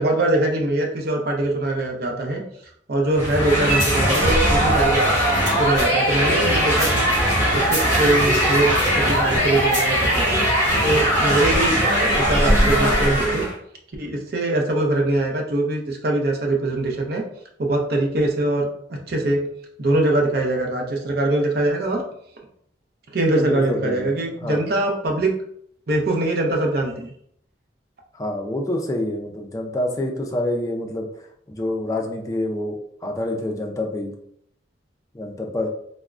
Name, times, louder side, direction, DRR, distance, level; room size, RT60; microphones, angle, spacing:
voice 1, 0.0-2.4 2.9-5.0 5.6-7.0 7.5-10.4 10.8-11.8 12.1-13.4 14.0-17.2 17.6-19.4 19.8-22.0 23.1-25.3 25.9-27.1, right 2 dB, 55° right, 1 dB, 0.6 m, -22 dB
sound 1, 3.1-13.5, equal, 20° right, 1.2 m, -19 dB
voice 2, 23.3-24.1 24.4-24.7 28.1-31.1 31.5-32.8 33.0-34.1 35.1-35.7, left 1 dB, 20° left, 1 dB, 0.4 m, -27 dB
3.4 x 2.0 x 2.4 m, 0.68 s
head